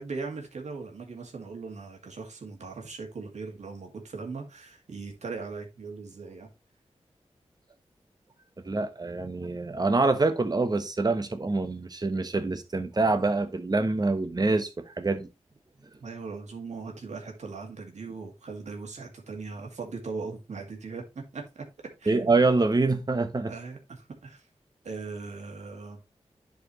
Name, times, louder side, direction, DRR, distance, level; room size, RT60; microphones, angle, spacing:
voice 1, 0.0-6.5 16.0-21.6 22.0-22.4 23.5-24.5 24.8-26.0, right 4 dB, 90° right, 2.2 m, -39 dB
voice 2, 8.6-15.3 22.1-23.5, right 3 dB, 35° right, 1.2 m, -25 dB
10.5 x 4.7 x 3.1 m
wide cardioid pair, 65°, 12 cm